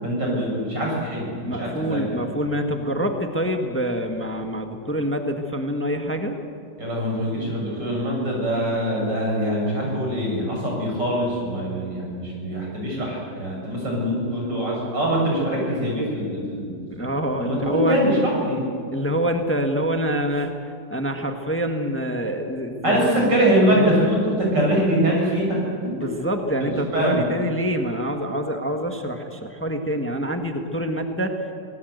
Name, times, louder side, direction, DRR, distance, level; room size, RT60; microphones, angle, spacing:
voice 1, 0.0-2.0 6.8-16.8 17.4-18.6 22.8-25.6 26.6-27.3, right 1 dB, 90° right, -2 dB, 7.6 m, -23 dB
voice 2, 1.4-6.4 16.9-18.0 18.9-20.5 20.9-23.2 23.7-24.1 26.0-31.4, equal, 10° left, 4 dB, 1.3 m, -26 dB
25.5 x 19.0 x 8.0 m, 2.3 s
omnidirectional pair, 1.8 m